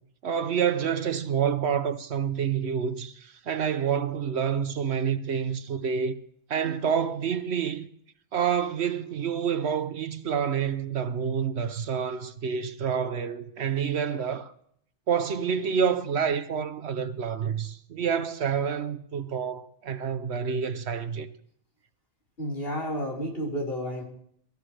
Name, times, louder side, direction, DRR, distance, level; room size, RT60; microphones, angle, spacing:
voice 1, 0.2-6.2 6.5-7.9 8.3-14.5 15.1-21.3, right 7 dB, 65° right, 1.0 m, -28 dB
voice 2, 22.4-24.0, equal, 50° left, 4.6 m, -31 dB
23.5 x 14.5 x 3.3 m
omnidirectional pair, 1.2 m